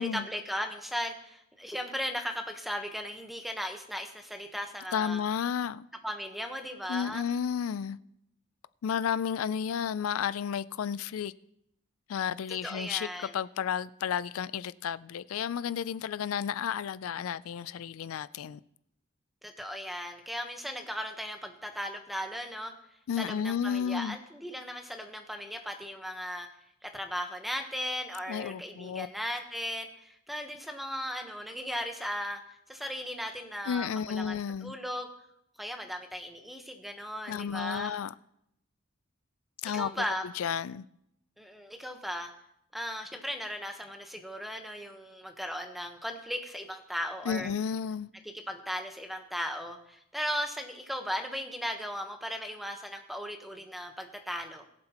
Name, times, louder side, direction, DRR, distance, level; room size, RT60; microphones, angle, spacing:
voice 1, 0.0-5.2 6.0-7.2 12.5-13.3 19.4-22.7 23.2-26.5 26.8-32.4 32.7-35.1 35.6-37.9 39.7-40.2 41.4-42.3 42.7-47.5 48.5-54.6, equal, ahead, 1.0 m, -37 dB
voice 2, 4.9-5.9 6.9-8.0 8.8-11.3 12.1-18.6 23.1-24.2 28.3-29.1 33.7-34.7 37.3-38.1 39.6-39.9 40.2-40.8 47.3-48.1, left 8 dB, 90° left, 0.4 m, -32 dB
21.5 x 7.7 x 2.9 m
head